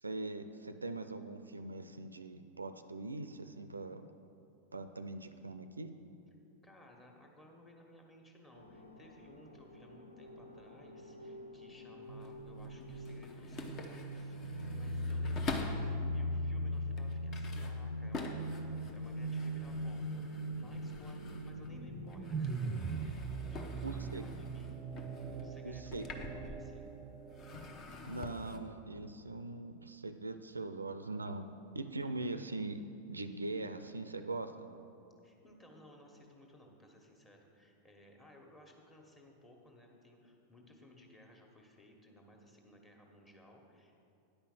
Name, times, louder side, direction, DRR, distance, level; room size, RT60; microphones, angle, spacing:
voice 1, 0.0-4.1 4.7-5.9 23.8-24.3 25.6-26.4 28.1-32.8 33.1-34.9, right 2 dB, 80° right, 10 dB, 0.4 m, -42 dB
voice 2, 6.6-24.8 25.4-26.9 32.0-32.3 35.2-44.0, left 1 dB, 15° left, 0 dB, 1.5 m, -59 dB
sound 1, 8.5-25.7, equal, 90° left, 0.8 m, -41 dB
sound 2, 12.0-16.0 16.6-21.8 22.1-26.9 27.3-28.6, left 3 dB, 30° left, 0.8 m, -46 dB
sound 3, 21.6-28.0, right 6 dB, 25° right, 0.5 m, -42 dB
9.9 x 5.5 x 7.4 m, 2.8 s
figure-of-eight pair, 90°, 0 cm